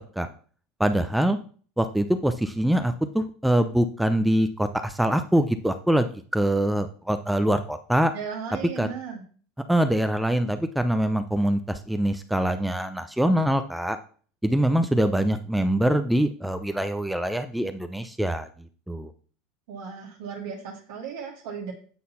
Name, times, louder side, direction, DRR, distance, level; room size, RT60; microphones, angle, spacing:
voice 1, 0.8-1.4 1.8-6.1 6.3-8.1 8.8-8.9 9.7-14.0 14.4-19.1, right 1 dB, 5° right, 8 dB, 0.6 m, -24 dB
voice 2, 8.1-9.2 19.7-21.7, right 6 dB, 70° right, -3 dB, 1.5 m, -36 dB
8.6 x 4.0 x 5.6 m, 0.43 s
hypercardioid pair, 85°, 0 cm